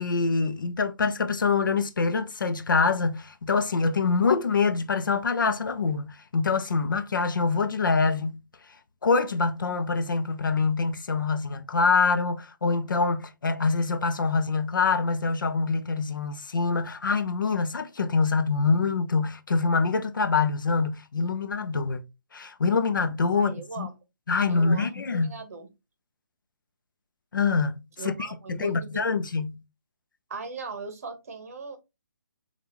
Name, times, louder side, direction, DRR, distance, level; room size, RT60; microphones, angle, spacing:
voice 1, 0.0-8.4 9.0-22.0 22.3-23.9 24.3-25.4 27.3-29.6, left 4 dB, 85° left, 0.7 m, -25 dB
voice 2, 23.3-23.9 24.5-25.7 28.0-29.0 30.3-31.8, right 4 dB, 45° right, 1.0 m, -38 dB
5.4 x 2.4 x 2.9 m
hypercardioid pair, 170°, 11 cm